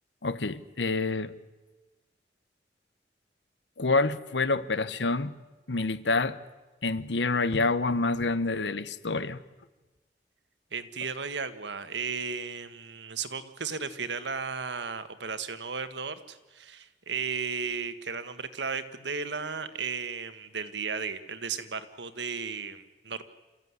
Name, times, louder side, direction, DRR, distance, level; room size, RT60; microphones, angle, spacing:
voice 1, 0.2-1.3 3.8-5.3 5.7-6.4 6.8-9.4, left 3 dB, 90° left, 14 dB, 1.1 m, -27 dB
voice 2, 10.7-23.2, right 5 dB, 85° right, 10 dB, 1.6 m, -35 dB
27.5 x 14.5 x 9.7 m, 1.2 s
head